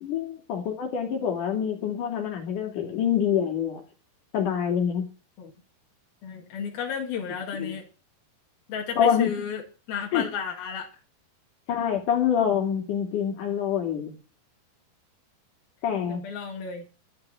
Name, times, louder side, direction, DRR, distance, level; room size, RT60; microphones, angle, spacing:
voice 1, 0.0-3.8 4.3-5.1 7.6-7.8 9.0-9.3 10.1-10.3 11.7-14.1 15.8-16.2, left 8 dB, 60° left, 3 dB, 4.2 m, -26 dB
voice 2, 6.2-7.9 8.7-9.6 9.9-10.9 16.1-16.9, left 7 dB, 80° left, 1 dB, 4.0 m, -32 dB
12.5 x 6.0 x 8.9 m, 0.35 s
omnidirectional pair, 4.2 m